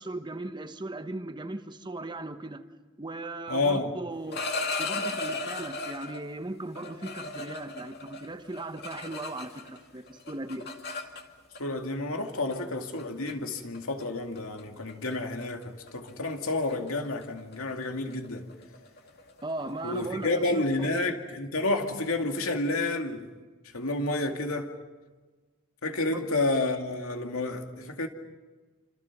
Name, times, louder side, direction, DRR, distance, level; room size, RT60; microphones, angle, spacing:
voice 1, 0.0-2.6 3.0-4.4 4.8-10.7 19.4-21.1 26.1-26.3, right 2 dB, 20° right, 1.1 m, -37 dB
voice 2, 3.5-3.9 11.6-18.5 19.8-23.3 23.7-24.7 25.8-28.1, left 2 dB, 80° left, 2.4 m, -30 dB
sound 1, 4.1-6.2 6.8-9.8 10.1-11.6 12.5-12.7 13.0-13.3 13.7-14.0 14.4-14.6 14.9-15.2 15.4-20.8, left 3 dB, 50° left, 2.3 m, -37 dB
29.0 x 26.5 x 6.1 m
head